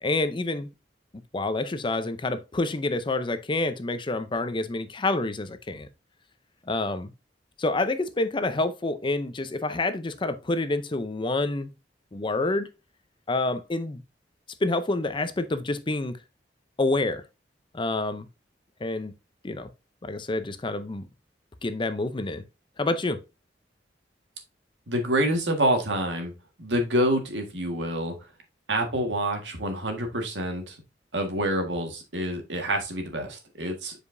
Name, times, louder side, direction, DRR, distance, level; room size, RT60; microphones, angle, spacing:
voice 1, 0.0-0.7 1.3-5.9 6.7-7.1 7.6-11.7 12.1-12.7 13.3-14.0 14.6-16.2 16.8-17.2 17.7-18.3 18.8-19.1 19.4-19.7 20.0-21.1 21.6-22.4 22.8-23.2, left 2 dB, 30° left, 0.6 m, -28 dB
voice 2, 24.9-26.3 26.6-28.2 28.7-30.8 31.1-33.9, right 1 dB, 80° right, 1.7 m, -27 dB
7.2 x 5.0 x 2.6 m
head